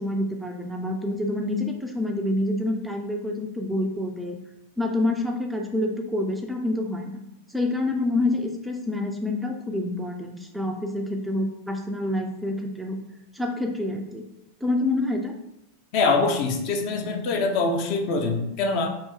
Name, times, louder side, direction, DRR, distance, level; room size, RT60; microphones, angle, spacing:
voice 1, 0.0-4.4 4.8-7.2 7.5-13.0 13.3-14.2 14.6-15.4, left 2 dB, 5° right, 2 dB, 0.4 m, -27 dB
voice 2, 15.9-18.9, left 3 dB, 45° left, 2 dB, 0.6 m, -24 dB
2.8 x 2.7 x 3.5 m, 0.83 s
figure-of-eight pair, 90°, 0 cm